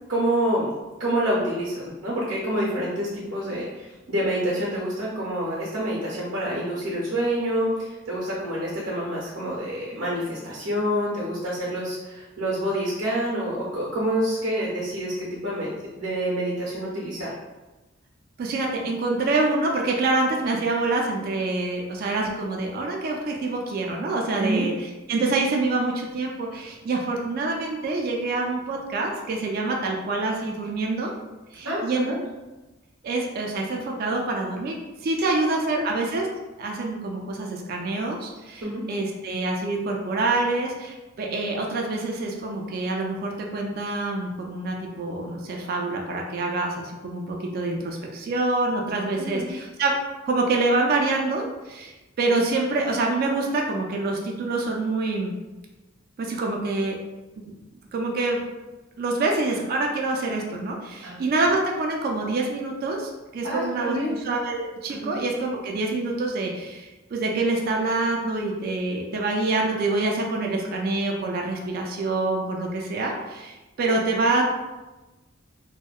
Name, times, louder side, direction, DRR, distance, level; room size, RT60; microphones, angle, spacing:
voice 1, 0.1-0.7 1.0-15.7 16.0-17.3 24.4-24.7 31.6-32.1 35.3-35.9 38.6-38.8 49.2-49.6 61.0-61.2 63.4-64.2 64.9-65.1, right 1 dB, 80° right, -6 dB, 0.7 m, -27 dB
voice 2, 18.4-31.1 31.5-32.1 33.0-34.7 35.0-36.3 36.6-50.0 50.3-55.4 56.2-57.0 57.4-57.5 57.9-58.4 59.0-74.4, right 2 dB, 50° right, 0 dB, 0.3 m, -26 dB
2.7 x 2.1 x 2.3 m, 1.1 s
head